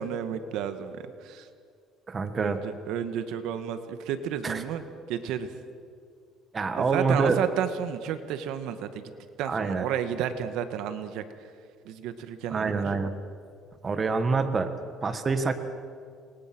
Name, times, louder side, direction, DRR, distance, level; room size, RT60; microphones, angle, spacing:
voice 1, 0.0-1.5 2.3-5.5 6.7-9.1 9.4-11.5 11.8-12.9, right 9 dB, 75° right, 9 dB, 1.6 m, -32 dB
voice 2, 2.1-2.6 4.4-4.6 6.5-7.4 9.5-9.8 12.5-13.1 13.8-14.7 15.0-15.5, right 4 dB, 25° right, 8 dB, 1.7 m, -26 dB
28.0 x 21.5 x 6.2 m, 2.2 s
cardioid pair, 125°, 0 cm